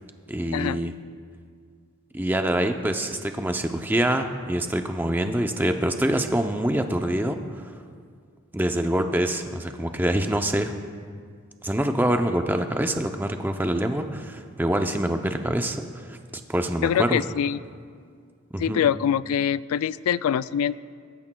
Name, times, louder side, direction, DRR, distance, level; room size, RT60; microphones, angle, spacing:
voice 1, 0.3-0.9 2.1-7.6 8.5-10.7 11.6-16.2 16.5-17.2 18.5-18.9, right 1 dB, 10° right, 6 dB, 0.5 m, -25 dB
voice 2, 16.8-17.6 18.6-20.8, left 8 dB, 85° left, 17 dB, 0.3 m, -24 dB
21.0 x 12.5 x 2.3 m, 2.1 s
head